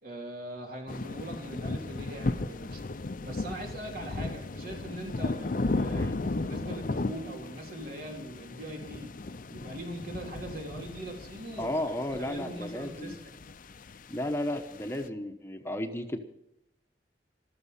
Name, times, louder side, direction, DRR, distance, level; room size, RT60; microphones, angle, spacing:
voice 1, 0.0-2.8 3.2-9.1 9.5-13.3, right 1 dB, 55° right, 1 dB, 3.5 m, -41 dB
sound 1, 0.9-15.1, left 2 dB, 50° left, 0.6 m, -36 dB
voice 2, 11.6-13.2 14.1-16.2, left 1 dB, 15° left, 5 dB, 1.1 m, -33 dB
15.0 x 13.5 x 5.7 m, 0.82 s
head